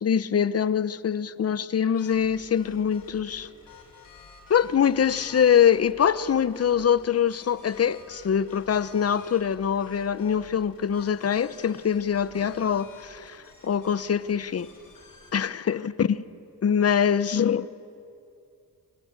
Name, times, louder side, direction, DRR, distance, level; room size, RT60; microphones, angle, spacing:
voice 1, 0.0-3.5 4.5-14.7 15.3-16.2 16.6-17.7, left 8 dB, 45° left, 0.9 m, -24 dB
sound 1, 2.0-15.3, left 4 dB, 70° left, 5.7 m, -51 dB
24.0 x 20.5 x 9.7 m
cardioid pair, 80°, 35 cm